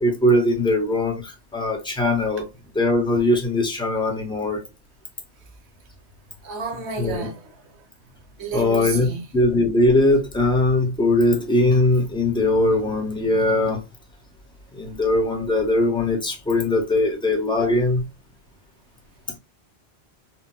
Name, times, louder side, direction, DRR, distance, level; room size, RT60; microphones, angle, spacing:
voice 1, 0.0-2.5 2.7-4.6 7.0-7.3 8.5-9.1 9.3-13.8 14.7-18.0, left 2 dB, 5° left, 0.6 m, -20 dB
voice 2, 6.4-7.6 8.4-9.2, right 5 dB, 75° right, 1.1 m, -31 dB
4.1 x 2.1 x 2.2 m
omnidirectional pair, 1.2 m